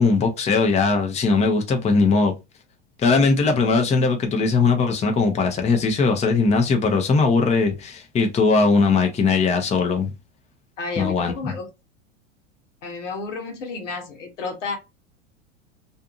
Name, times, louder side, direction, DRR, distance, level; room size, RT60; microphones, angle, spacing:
voice 1, 0.0-2.3 3.0-10.1 11.0-11.5, left 4 dB, 20° left, 0.6 m, -19 dB
voice 2, 10.8-11.7 12.8-14.8, left 4 dB, 80° left, 1.1 m, -31 dB
2.6 x 2.5 x 2.4 m
hypercardioid pair, 95°, 36 cm